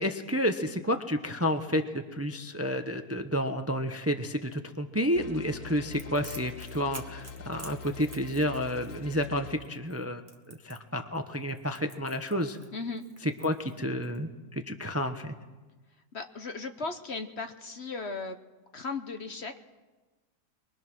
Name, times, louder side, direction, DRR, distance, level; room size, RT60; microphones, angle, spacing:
voice 1, 0.0-10.2 10.5-12.6 13.2-15.3, equal, 10° right, 7 dB, 0.8 m, -30 dB
sound 1, 5.2-9.5, left 5 dB, 70° left, 1.4 m, -44 dB
Crackle, 5.9-14.2, right 3 dB, 30° right, 1.6 m, -50 dB
voice 2, 12.7-13.0 16.1-18.4 18.7-19.6, left 4 dB, 50° left, 7 dB, 1.1 m, -36 dB
24.0 x 22.5 x 6.2 m, 1.2 s
omnidirectional pair, 1.7 m